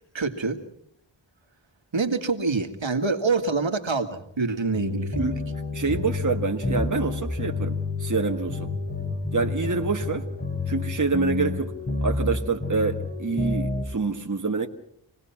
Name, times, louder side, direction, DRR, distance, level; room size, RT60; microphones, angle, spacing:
voice 1, 0.1-0.6 1.9-5.2, right 4 dB, 70° right, 2.1 m, -26 dB
sound 1, 4.7-13.8, left 3 dB, 25° left, 4.9 m, -29 dB
voice 2, 5.7-8.7 9.3-10.3 10.7-11.7 12.0-14.7, right 4 dB, 40° right, 1.5 m, -26 dB
27.0 x 19.0 x 6.0 m
wide cardioid pair, 80°, 47 cm